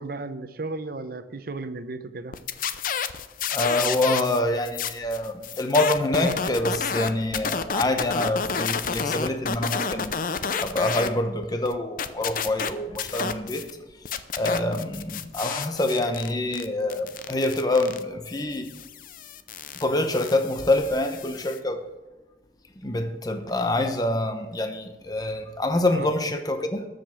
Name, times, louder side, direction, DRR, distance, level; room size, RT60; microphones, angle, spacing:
voice 1, 0.0-2.4 25.9-26.1, right 3 dB, 55° right, 11 dB, 0.8 m, -34 dB
sound 1, 2.3-4.4 4.6-11.1 11.4-13.7 14.0-21.6, left 6 dB, 50° left, 0.6 m, -30 dB
voice 2, 3.5-10.2 10.6-13.7 14.3-18.7 19.8-21.8 22.8-26.9, left 1 dB, 20° left, 6 dB, 0.8 m, -26 dB
13.0 x 5.2 x 7.6 m, 1.1 s
head